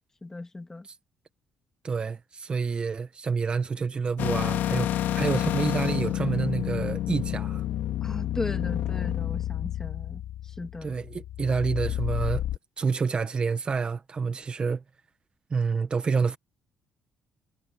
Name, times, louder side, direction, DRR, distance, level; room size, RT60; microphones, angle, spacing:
voice 1, 0.2-0.9 8.0-10.9, left 2 dB, 15° left, 2.3 m, -37 dB
voice 2, 1.8-7.6 10.8-12.4 12.8-14.8 15.5-16.4, right 5 dB, 30° right, 1.4 m, -28 dB
sound 1, 4.2-12.6, left 12 dB, 80° left, 4.1 m, -29 dB
cardioid pair, 130°, 3 cm